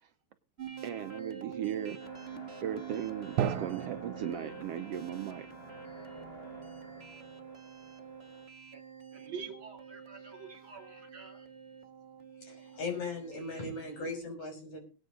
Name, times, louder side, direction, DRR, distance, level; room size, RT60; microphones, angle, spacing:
sound 1, 0.6-14.2, right 7 dB, 25° right, 1.5 m, -47 dB
voice 1, 0.8-2.0 2.6-5.5, right 10 dB, 70° right, 8 dB, 1.6 m, -37 dB
sound 2, 2.0-8.4, left 3 dB, 20° left, 3.2 m, -52 dB
Drum, 3.4-7.1, right 10 dB, 90° right, 2.3 m, -38 dB
voice 2, 9.1-11.5, right 6 dB, 45° right, 4 dB, 2.9 m, -46 dB
voice 3, 12.4-14.8, left 3 dB, 70° left, 3 dB, 7.5 m, -38 dB
22.0 x 9.0 x 3.8 m, 0.35 s
omnidirectional pair, 3.3 m